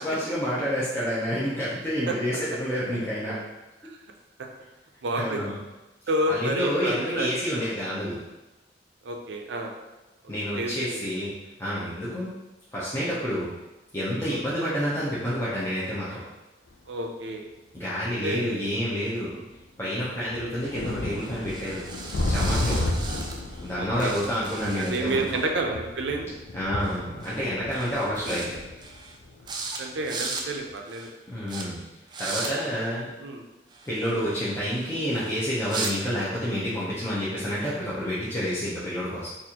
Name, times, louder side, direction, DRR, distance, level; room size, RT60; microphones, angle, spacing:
voice 1, 0.0-3.4 5.1-5.6 6.3-8.2 10.3-11.3 11.6-12.3 12.7-13.5 13.9-16.2 17.7-19.3 19.8-21.8 22.3-22.8 23.6-25.4 26.5-28.6 31.3-31.8 32.2-33.1 33.9-39.3, equal, 15° left, -9 dB, 0.6 m, -29 dB
voice 2, 5.0-5.4 6.1-7.7 9.0-9.7 10.5-11.1 12.1-12.2 14.2-14.4 16.9-17.4 18.2-18.7 19.3-19.5 22.7-22.9 23.8-24.1 24.8-26.3 29.8-31.1 32.4-32.8 33.2-33.4, right 1 dB, 80° right, 2 dB, 0.5 m, -30 dB
sound 1, 16.7-16.8 17.8-17.9 19.0-19.1 19.5-19.6 20.1-30.2 30.6-30.7, left 1 dB, 75° left, 0.4 m, -33 dB
sound 2, 20.6-23.7 24.0-25.5 26.8-27.0 27.2-27.5 27.7-28.5 28.8-29.2 29.5-29.8 30.0-30.5 30.9-31.1 31.5-31.6 32.1-32.5 33.7-35.9, right 4 dB, 25° right, 0.4 m, -37 dB
4.1 x 2.5 x 2.8 m, 1.0 s
head